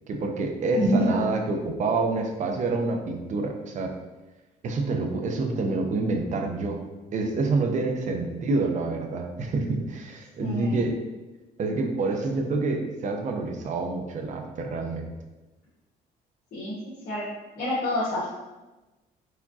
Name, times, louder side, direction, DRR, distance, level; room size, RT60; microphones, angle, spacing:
voice 1, 0.1-3.9 4.6-6.8 7.1-11.0 11.6-15.1, right 3 dB, 45° right, 4 dB, 0.7 m, -27 dB
voice 2, 0.7-1.2 10.4-10.8 16.5-16.7 17.0-17.2 17.5-18.3, equal, 60° left, -9 dB, 1.4 m, -26 dB
4.7 x 3.5 x 2.7 m, 1.1 s
cardioid pair, 110°, 17 cm